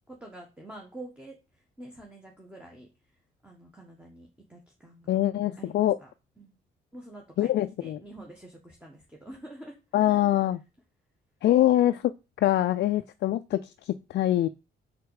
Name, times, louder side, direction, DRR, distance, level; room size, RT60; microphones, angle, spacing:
voice 1, 0.1-1.4 1.8-2.9 3.4-5.3 5.6-6.1 6.4-6.6 6.9-7.5 7.8-10.3, right 1 dB, 5° right, 0 dB, 1.4 m, -47 dB
voice 2, 5.1-6.0 7.4-8.0 9.9-10.6 11.4-12.1 12.4-14.5, left 13 dB, 60° left, 10 dB, 0.4 m, -24 dB
5.1 x 4.7 x 4.8 m, 0.29 s
cardioid pair, 90°, 20 cm